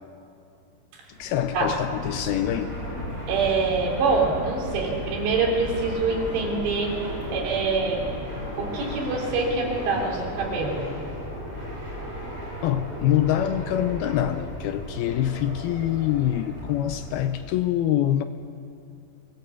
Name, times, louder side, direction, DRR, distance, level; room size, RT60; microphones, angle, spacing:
Fixed-wing aircraft airplane, 1.1-17.5, equal, 40° right, 7.8 m, -35 dB
voice 1, 1.2-2.7 12.6-18.2, left 11 dB, 80° left, 10 dB, 2.3 m, -25 dB
voice 2, 3.3-6.9 7.3-8.1 8.6-10.9, right 4 dB, 80° right, 0 dB, 5.4 m, -25 dB
23.5 x 19.0 x 8.4 m, 2.5 s
omnidirectional pair, 4.9 m